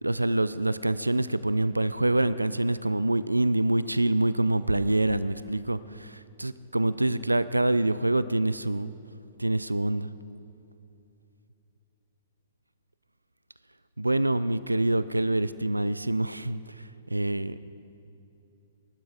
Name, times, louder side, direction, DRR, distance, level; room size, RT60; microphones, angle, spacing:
voice 1, 0.0-8.9 9.4-10.1 14.0-17.6, right 2 dB, 85° right, 16 dB, 0.4 m, -26 dB
19.0 x 12.0 x 4.9 m, 2.9 s
figure-of-eight pair, 115°, 0 cm